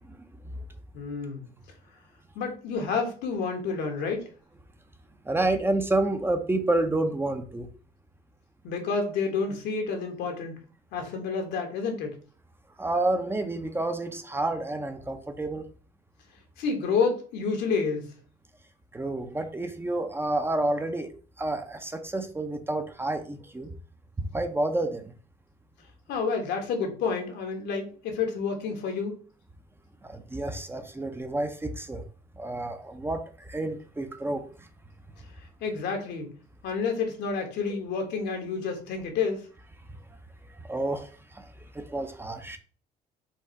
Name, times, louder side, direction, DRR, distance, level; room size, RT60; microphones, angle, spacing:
voice 1, 0.9-1.4 2.3-4.2 8.6-10.6 10.9-12.2 16.6-18.1 26.1-29.2 35.6-36.3 36.6-39.4, left 5 dB, 85° left, 3 dB, 1.3 m, -29 dB
voice 2, 5.3-7.7 12.8-15.6 18.9-21.1 21.4-23.7 24.2-25.1 30.0-32.0 32.4-34.4 40.7-41.5 41.7-42.6, right 2 dB, 15° right, 7 dB, 0.6 m, -29 dB
4.6 x 2.6 x 4.3 m, 0.39 s
cardioid pair, 110°, 17 cm